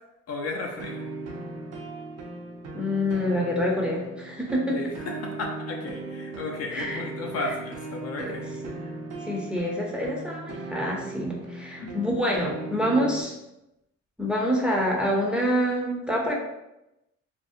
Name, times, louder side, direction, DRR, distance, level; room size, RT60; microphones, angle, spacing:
voice 1, 0.3-1.0 4.7-8.5 11.8-12.0, left 2 dB, 55° left, 1 dB, 0.5 m, -34 dB
sound 1, 0.8-13.2, right 3 dB, 55° right, 0.5 m, -38 dB
voice 2, 2.7-4.8 6.7-7.0 7.5-7.6 8.2-8.3 9.2-13.4 14.2-16.3, equal, 5° right, -2 dB, 0.5 m, -26 dB
2.6 x 2.1 x 2.5 m, 0.92 s
cardioid pair, 90°, 30 cm